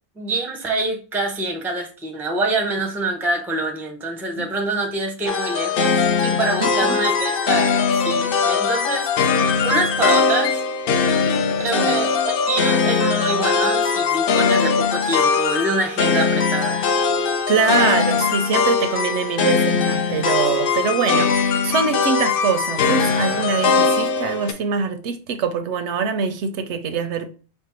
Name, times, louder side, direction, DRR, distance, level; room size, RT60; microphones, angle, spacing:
voice 1, 0.2-10.6 11.6-16.9, right 2 dB, ahead, 0.5 m, -25 dB
sound 1, 5.3-24.5, left 5 dB, 60° left, 0.7 m, -20 dB
voice 2, 17.5-27.3, right 6 dB, 80° right, 0.9 m, -23 dB
4.5 x 2.1 x 4.2 m
omnidirectional pair, 1.1 m